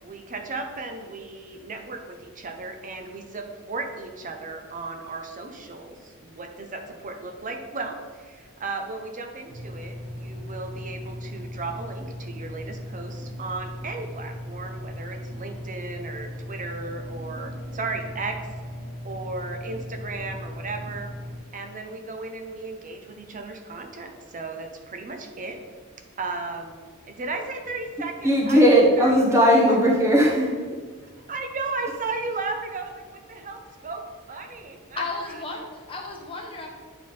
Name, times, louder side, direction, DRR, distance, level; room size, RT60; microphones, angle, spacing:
voice 1, 0.0-18.4 19.0-21.1 21.5-25.6 26.2-26.8 27.1-29.5 31.3-35.4, right 3 dB, 35° right, 5 dB, 0.7 m, -35 dB
sound 1, 9.5-21.4, equal, 50° right, 1.7 m, -37 dB
voice 2, 28.2-30.5, equal, 15° right, -2 dB, 1.1 m, -17 dB
voice 3, 34.9-36.7, left 3 dB, 25° left, 0 dB, 1.1 m, -33 dB
9.5 x 3.5 x 3.8 m, 1.5 s
head